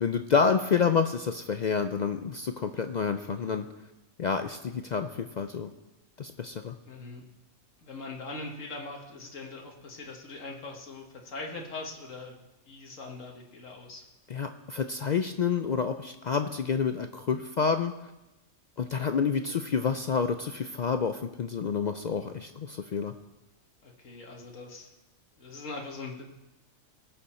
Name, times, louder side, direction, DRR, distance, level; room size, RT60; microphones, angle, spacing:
voice 1, 0.0-3.7 4.2-5.7 6.2-6.7 14.3-17.9 18.8-23.1, left 6 dB, 60° left, 8 dB, 0.4 m, -28 dB
voice 2, 6.8-7.2 7.8-12.4 12.7-14.1 19.4-19.6 23.8-24.9 25.4-26.2, left 3 dB, 85° left, 0 dB, 1.8 m, -41 dB
19.0 x 6.7 x 4.3 m, 1.0 s
omnidirectional pair, 1.3 m